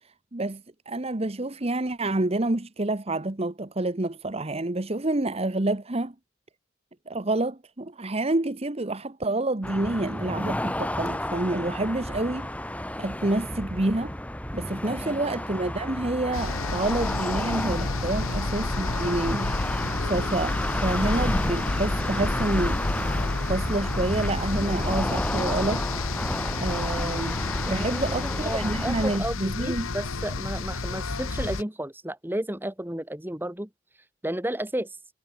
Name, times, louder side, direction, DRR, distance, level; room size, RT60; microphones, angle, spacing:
voice 1, 0.3-6.1 7.1-12.5 13.0-14.1 14.5-19.5 20.1-22.8 23.5-25.9 26.6-27.4 27.7-29.9, right 2 dB, 30° right, 1.0 m, -28 dB
sound 1, 9.6-29.2, left 1 dB, 5° left, 3.1 m, -31 dB
sound 2, 16.3-31.6, left 3 dB, 75° left, 1.3 m, -30 dB
voice 2, 27.7-33.7 34.2-34.9, right 1 dB, 10° right, 1.6 m, -32 dB
head